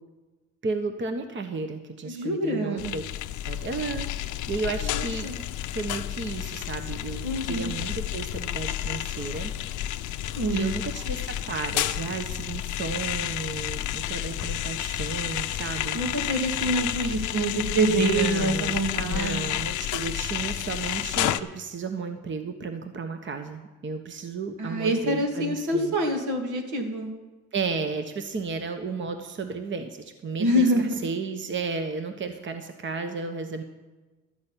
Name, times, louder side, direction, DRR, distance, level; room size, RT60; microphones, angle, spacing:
voice 1, 0.6-3.0 3.4-5.3 5.7-9.5 10.5-16.0 17.9-25.9 27.5-33.6, right 4 dB, 40° right, 7 dB, 1.1 m, -33 dB
voice 2, 2.0-2.8 4.8-5.4 7.2-7.7 10.4-10.7 15.9-19.4 24.6-27.1 30.4-31.0, right 1 dB, 80° right, 3 dB, 2.4 m, -26 dB
sound 1, 2.8-21.4, left 13 dB, 80° left, 0.6 m, -31 dB
12.5 x 6.4 x 8.9 m, 1.2 s
cardioid pair, 90°, 30 cm